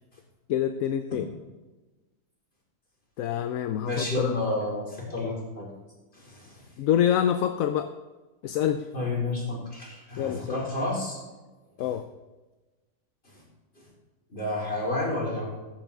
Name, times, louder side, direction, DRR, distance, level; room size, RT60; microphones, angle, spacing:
voice 1, 0.5-1.2 3.2-4.4 6.8-7.9 8.4-8.9 10.2-10.6 11.8-12.0, left 10 dB, 80° left, 9 dB, 1.0 m, -26 dB
voice 2, 3.8-5.7 6.1-6.7 8.9-11.2 13.3-13.4 13.7-13.9 14.3-15.5, left 2 dB, 45° left, -5 dB, 4.6 m, -30 dB
15.0 x 11.0 x 3.6 m, 1.2 s
omnidirectional pair, 1.4 m